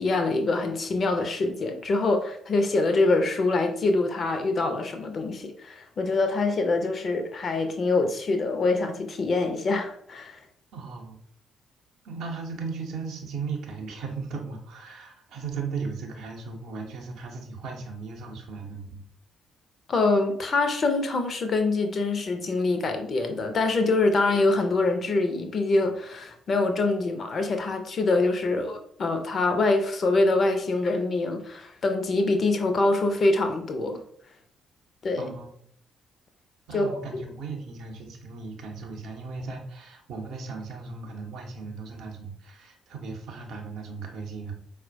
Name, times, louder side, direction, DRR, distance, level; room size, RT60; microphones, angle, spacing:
voice 1, 0.0-10.4 19.9-34.0 35.0-35.3 36.7-36.9, left 3 dB, 45° left, 0.5 m, -25 dB
voice 2, 10.7-11.2 12.0-19.0 35.2-35.5 36.7-44.5, right 4 dB, 60° right, 0.6 m, -37 dB
4.2 x 2.1 x 2.5 m
figure-of-eight pair, 40°, 0 cm